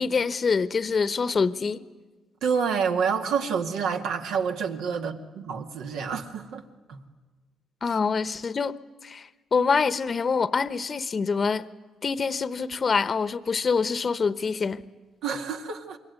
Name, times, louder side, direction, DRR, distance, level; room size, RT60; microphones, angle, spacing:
voice 1, 0.0-1.8 7.8-8.7 9.0-11.7 12.0-14.8, left 5 dB, 40° left, 0.9 m, -25 dB
voice 2, 2.4-6.6 6.9-7.0 15.2-16.0, right 6 dB, 85° right, 2.1 m, -28 dB
26.5 x 23.0 x 9.6 m
cardioid pair, 90°, 0 cm